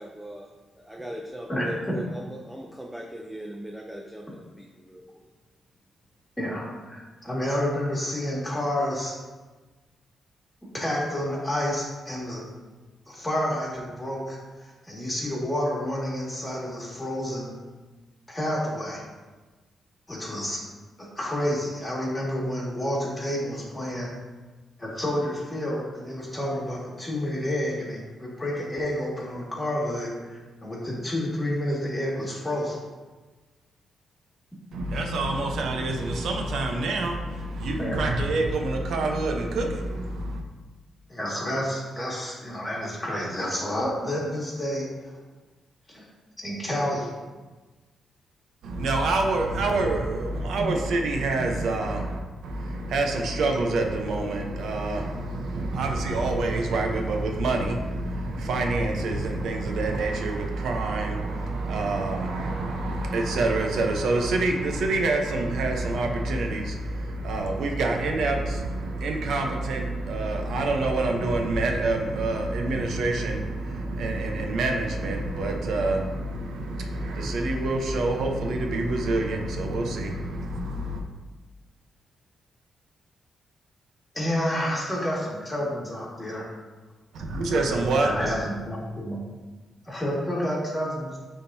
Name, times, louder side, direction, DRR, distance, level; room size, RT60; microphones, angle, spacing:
voice 1, 0.0-5.3, equal, 5° right, 1 dB, 0.5 m, -39 dB
voice 2, 6.4-9.1 10.7-12.4 13.1-17.5 18.3-19.0 20.1-20.6 21.0-24.1 24.8-32.8 37.8-38.0 41.1-44.9 45.9-46.1 46.4-47.1 51.4-51.5 84.1-86.5 88.0-89.2 89.8-91.2, left 1 dB, 15° left, -5 dB, 2.0 m, -29 dB
voice 3, 34.7-40.4 48.6-81.0 87.1-88.3, right 2 dB, 80° right, 3 dB, 0.8 m, -27 dB
9.8 x 3.7 x 2.7 m, 1.3 s
cardioid pair, 115°, 0 cm